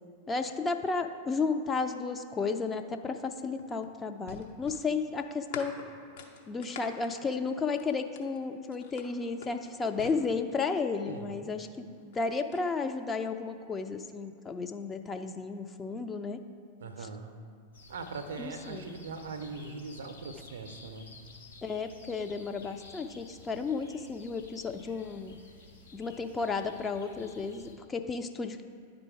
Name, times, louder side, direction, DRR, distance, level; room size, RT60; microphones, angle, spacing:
voice 1, 0.3-5.7 6.5-11.7 12.0-16.4 17.0-17.1 18.4-19.0 21.6-25.4 25.9-28.6, left 4 dB, 20° left, 6 dB, 0.4 m, -33 dB
sound 1, 3.1-8.4 8.8-10.9 11.9-12.7, left 6 dB, 55° left, 0.7 m, -47 dB
voice 2, 16.8-17.4 17.9-21.1, right 4 dB, 65° right, 8 dB, 0.5 m, -41 dB
sound 2, 17.7-27.7, left 3 dB, 75° left, 1.0 m, -53 dB
10.0 x 3.9 x 4.7 m, 2.2 s
figure-of-eight pair, 90°, 0 cm